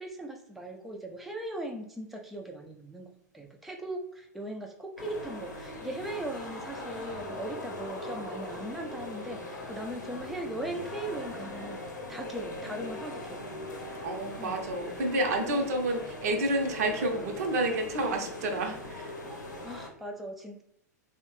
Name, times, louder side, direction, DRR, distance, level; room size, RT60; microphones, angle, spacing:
voice 1, 0.0-3.1 3.3-11.8 12.1-13.8 14.4-14.6 15.4-15.7 19.6-20.6, right 1 dB, ahead, 1 dB, 0.3 m, -39 dB
sound 1, 5.0-19.9, left 1 dB, 80° left, 0.7 m, -40 dB
voice 2, 14.0-19.1, right 1 dB, 55° right, 3 dB, 0.6 m, -29 dB
3.0 x 2.1 x 3.0 m, 0.71 s
figure-of-eight pair, 95°, 10 cm